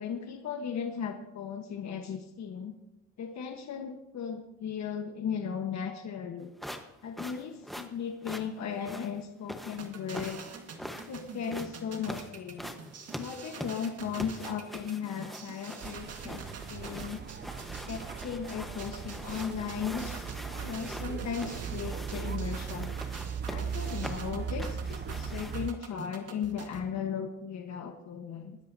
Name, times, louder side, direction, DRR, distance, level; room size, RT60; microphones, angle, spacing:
voice 1, 0.0-2.7 3.2-6.5 7.0-10.4 11.1-12.9 13.1-17.2 17.9-23.0 23.5-28.6, left 7 dB, 65° left, 4 dB, 1.3 m, -36 dB
sound 1, 6.6-25.8, equal, ahead, 1.2 m, -43 dB
sound 2, 9.8-26.8, right 5 dB, 55° right, 1.8 m, -46 dB
sound 3, 15.8-25.7, right 7 dB, 35° right, 0.6 m, -38 dB
20.5 x 10.5 x 2.8 m, 0.89 s
cardioid pair, 90°, 30 cm